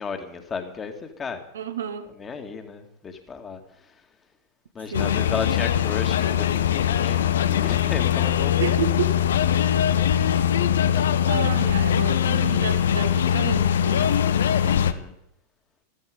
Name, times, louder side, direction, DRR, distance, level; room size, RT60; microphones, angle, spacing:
voice 1, 0.0-1.4 2.2-3.9 4.7-8.5 14.6-15.1, left 5 dB, 20° left, 6 dB, 2.2 m, -34 dB
voice 2, 1.5-2.1 4.9-5.2 8.6-9.1 10.7-10.9 11.3-14.2, right 7 dB, 65° right, 8 dB, 1.4 m, -31 dB
sound 1, 4.9-14.9, left 9 dB, 65° left, 0.8 m, -21 dB
15.0 x 14.5 x 5.2 m, 0.83 s
figure-of-eight pair, 90°, 0 cm